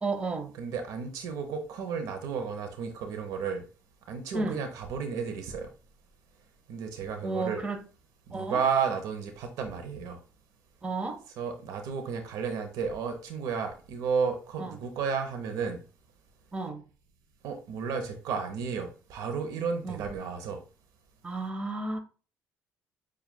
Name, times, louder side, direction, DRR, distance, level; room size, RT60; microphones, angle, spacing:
voice 1, 0.0-0.5 4.3-4.6 7.2-7.8 8.3-8.6 10.8-11.2 14.6-14.8 16.5-16.8 19.8-20.0 21.2-22.0, right 3 dB, 20° right, 0.7 m, -32 dB
voice 2, 0.6-3.6 4.1-5.7 6.7-7.6 8.3-10.2 11.4-15.8 17.4-20.6, right 6 dB, 75° right, 0.7 m, -32 dB
7.0 x 2.4 x 2.2 m
cardioid pair, 90°, 6 cm